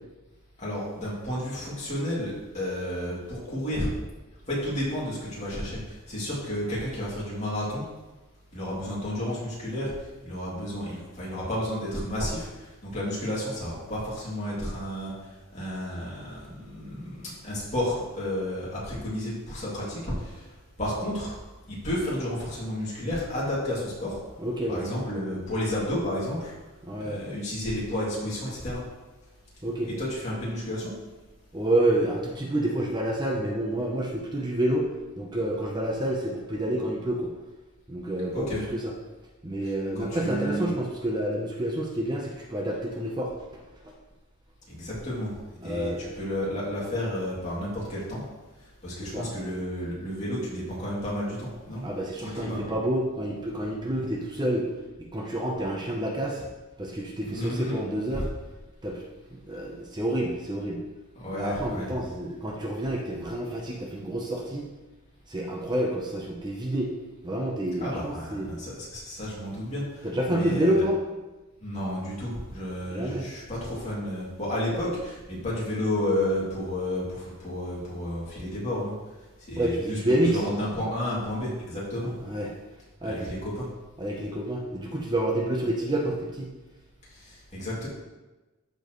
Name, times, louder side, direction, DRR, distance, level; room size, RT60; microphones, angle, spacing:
voice 1, 0.6-3.9 4.5-7.8 8.5-9.9 10.2-20.5 20.8-21.3 21.7-24.2 24.7-26.5 27.0-28.8 29.8-30.9 38.3-38.7 39.6-40.7 44.7-45.3 45.6-48.2 48.8-51.8 52.2-52.6 57.2-57.8 58.1-58.2 61.1-62.0 67.8-70.9 71.6-78.9 79.5-82.1 83.0-83.7 87.1-87.9, left 1 dB, 35° left, -7 dB, 2.8 m, -31 dB
voice 2, 24.4-24.8 26.8-27.2 29.6-29.9 31.5-34.9 35.2-37.3 37.9-38.9 39.4-43.3 45.6-46.0 49.0-49.3 51.8-54.7 55.0-56.5 56.8-58.3 58.8-59.0 59.5-60.8 61.3-64.7 65.3-66.9 67.2-68.5 70.0-71.0 72.9-73.3 79.6-80.4 82.3-82.5 83.0-83.3 84.0-86.5, right 1 dB, 20° right, -1 dB, 0.8 m, -28 dB
13.5 x 4.5 x 3.2 m, 1.1 s
head